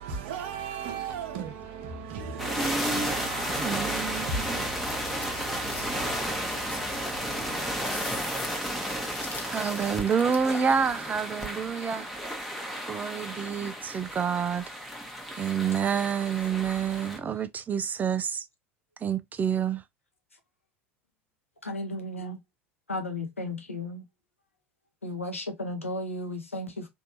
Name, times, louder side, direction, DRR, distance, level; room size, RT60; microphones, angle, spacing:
voice 1, 0.0-8.4, right 5 dB, 60° right, 0.8 m, -38 dB
sound 1, 2.4-17.2, equal, ahead, 1.0 m, -33 dB
voice 2, 2.6-3.1 3.6-4.6 9.5-12.1 12.9-14.7 15.4-18.4 19.0-19.8, right 7 dB, 25° right, 0.4 m, -28 dB
sound 2, 4.7-10.5, left 4 dB, 25° left, 0.9 m, -44 dB
voice 3, 21.6-22.4 22.9-24.0 25.0-26.9, left 1 dB, 90° left, 0.7 m, -34 dB
3.3 x 2.6 x 2.9 m
figure-of-eight pair, 75°, 7 cm